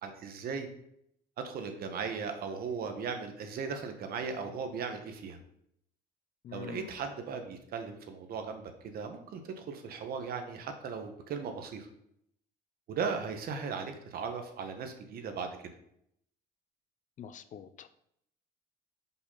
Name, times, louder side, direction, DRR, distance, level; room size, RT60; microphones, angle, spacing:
voice 1, 0.0-0.7 1.4-5.4 6.5-11.9 12.9-15.7, right 5 dB, 60° right, 6 dB, 1.2 m, -37 dB
voice 2, 6.4-6.9 17.2-17.9, left 7 dB, 50° left, 13 dB, 0.5 m, -45 dB
5.6 x 4.2 x 5.5 m, 0.73 s
cardioid pair, 110°, 17 cm